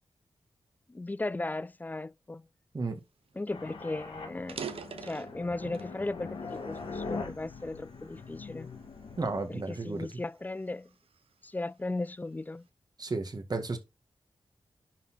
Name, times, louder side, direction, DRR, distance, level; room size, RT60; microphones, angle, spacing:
voice 1, 0.9-2.5 3.4-4.6 5.0-8.7 9.5-10.9 11.4-12.7, left 2 dB, 20° left, 0.3 m, -36 dB
sound 1, 3.3-3.4 3.7-3.8 4.3-6.0 6.5-7.8 8.4-8.6 9.3-11.3, right 6 dB, 80° right, 0.9 m, -44 dB
sound 2, 3.5-9.4, left 4 dB, 85° left, 2.6 m, -42 dB
voice 2, 9.2-10.1 13.0-13.8, right 3 dB, 45° right, 1.8 m, -33 dB
10.5 x 4.2 x 4.3 m
cardioid pair, 70°, 10 cm